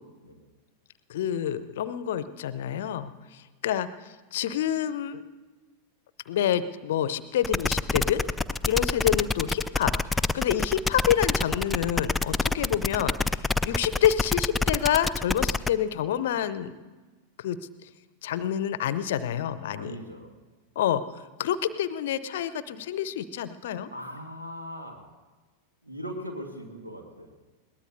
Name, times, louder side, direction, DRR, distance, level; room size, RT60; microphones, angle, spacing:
voice 1, 1.1-3.9 4.3-5.2 6.3-8.2 8.6-16.7 17.4-17.6 18.2-20.0 20.8-23.9, left 10 dB, 55° left, 15 dB, 0.6 m, -28 dB
sound 1, 7.4-15.7, left 3 dB, 10° left, 0.4 m, -26 dB
voice 2, 8.8-9.2 19.7-20.3 23.7-25.0 25.8-27.4, equal, 85° right, 3 dB, 1.6 m, -40 dB
21.5 x 18.5 x 2.7 m, 1.3 s
figure-of-eight pair, 90°, 0 cm